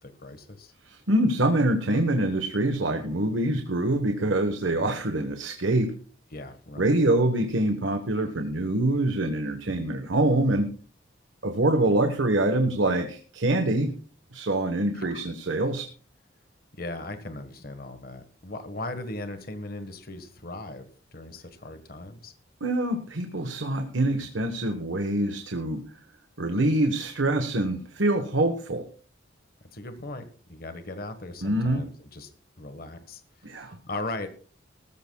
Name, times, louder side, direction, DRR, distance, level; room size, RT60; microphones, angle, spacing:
voice 1, 0.0-0.7 3.9-4.0 6.3-6.9 9.7-9.9 14.9-15.3 16.7-22.3 24.2-24.3 27.2-27.4 29.7-32.3 32.6-34.3, left 2 dB, 50° left, 8 dB, 1.4 m, -38 dB
voice 2, 0.8-6.0 6.8-10.7 11.4-13.9 14.3-15.9 22.6-25.8 26.4-28.9 31.4-31.9 33.4-33.8, right 1 dB, 80° right, 6 dB, 1.3 m, -25 dB
19.5 x 14.0 x 2.3 m, 0.41 s
head